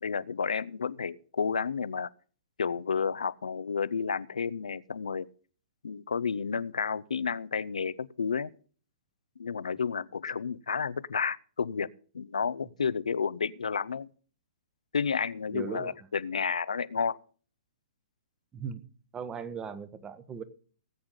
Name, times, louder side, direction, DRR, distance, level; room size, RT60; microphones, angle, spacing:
voice 1, 0.0-2.1 2.6-5.3 5.8-8.5 9.4-11.9 12.1-14.1 14.9-17.2, left 6 dB, 75° left, 0.6 m, -31 dB
voice 2, 15.5-15.9 18.5-18.8 19.1-20.4, right 6 dB, 15° right, 1.1 m, -38 dB
18.5 x 8.6 x 3.8 m
figure-of-eight pair, 115°, 4 cm